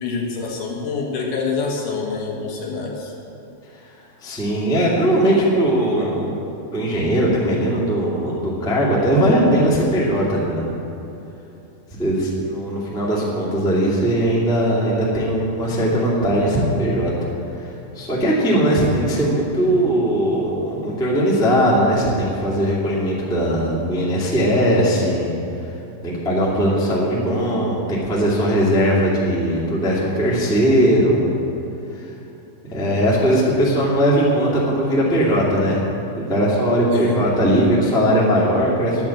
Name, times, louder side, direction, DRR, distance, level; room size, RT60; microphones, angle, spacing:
voice 1, 0.0-3.1 36.9-37.2, left 4 dB, 65° left, -1 dB, 3.3 m, -26 dB
voice 2, 4.2-6.3 6.7-10.6 12.0-17.1 17.5-25.3 26.0-31.2 31.9-32.1 32.7-35.8 36.1-39.1, equal, ahead, -6 dB, 1.3 m, -19 dB
11.0 x 10.5 x 7.4 m, 2.8 s
omnidirectional pair, 5.0 m